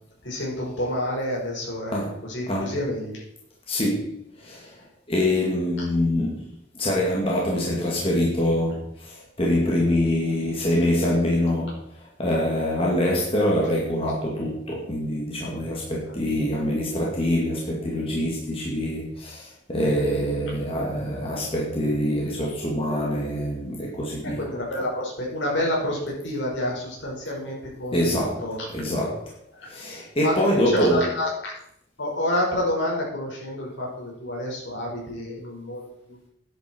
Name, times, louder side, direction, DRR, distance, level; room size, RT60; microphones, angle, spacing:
voice 1, 0.2-1.9 2.3-3.2 5.8-5.9 24.2-28.6 29.5-29.7 30.2-31.5 32.0-36.2, left 1 dB, 70° left, -2 dB, 5.4 m, -28 dB
voice 2, 1.9-2.2 2.5-2.7 3.7-6.5 6.7-11.8 12.2-24.5 27.9-28.4 28.7-29.3 29.6-31.0, left 1 dB, 30° left, -3 dB, 2.4 m, -25 dB
12.5 x 10.5 x 4.6 m, 0.74 s
head